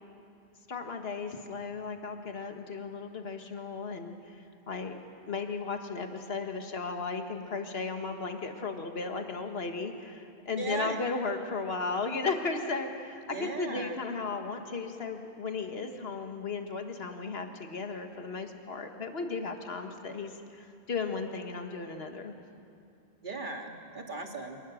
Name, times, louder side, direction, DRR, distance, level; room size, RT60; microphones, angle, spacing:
voice 1, 0.7-5.0 5.3-22.3, left 4 dB, 70° left, 5 dB, 1.7 m, -35 dB
voice 2, 10.6-11.0 13.3-14.0 23.2-24.6, right 3 dB, 50° right, 3 dB, 2.0 m, -37 dB
27.0 x 18.5 x 6.3 m, 2.5 s
omnidirectional pair, 1.1 m